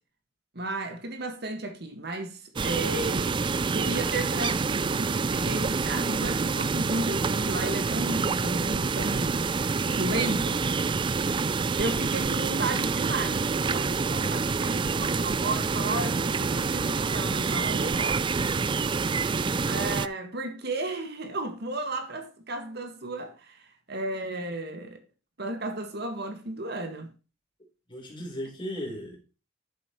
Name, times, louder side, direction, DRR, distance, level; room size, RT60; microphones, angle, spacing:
voice 1, 0.6-9.5 9.8-10.6 11.8-18.2 19.7-23.6 23.9-25.0 25.4-27.1, right 2 dB, 55° right, 1.8 m, -34 dB
sound 1, 2.6-20.1, right 4 dB, 25° right, 0.3 m, -27 dB
voice 2, 19.2-19.6 27.9-29.4, equal, 25° left, 4.2 m, -38 dB
11.5 x 7.5 x 3.1 m
head